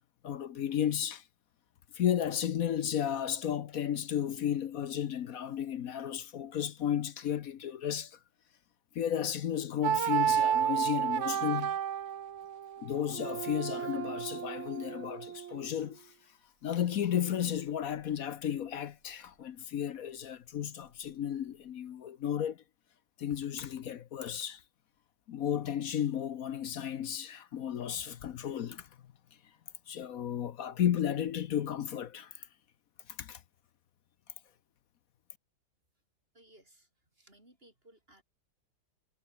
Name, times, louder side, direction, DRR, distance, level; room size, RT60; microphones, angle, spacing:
voice 1, 0.2-1.2 1.9-8.2 8.9-11.8 12.8-16.1 16.6-22.6 23.2-24.6 25.3-28.9 29.9-32.5 33.2-33.4, left 9 dB, 60° left, 1.1 m, -33 dB
sound 1, 9.8-15.7, right 9 dB, 50° right, 1.0 m, -32 dB
voice 2, 36.3-38.2, right 1 dB, 30° right, 7.3 m, -61 dB
omnidirectional pair, 1.9 m